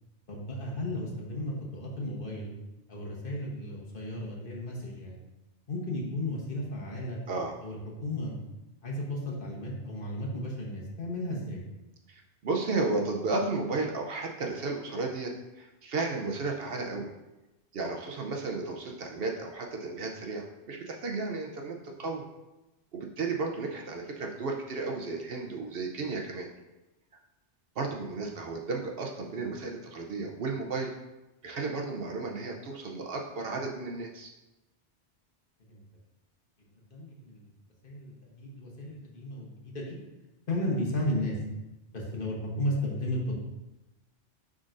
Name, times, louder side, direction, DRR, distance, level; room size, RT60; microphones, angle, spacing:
voice 1, 0.3-2.5 2.9-5.2 5.7-7.2 7.6-8.4 8.8-11.6 35.7-35.8 36.9-37.5 37.8-40.0 40.5-41.4 41.9-43.3, left 1 dB, 50° left, -3 dB, 1.3 m, -34 dB
voice 2, 12.1-17.1 17.7-22.2 22.9-26.5 27.8-30.9 31.4-34.3, right 3 dB, 60° right, 2 dB, 0.8 m, -33 dB
10.0 x 3.7 x 2.5 m, 1.0 s
omnidirectional pair, 1.2 m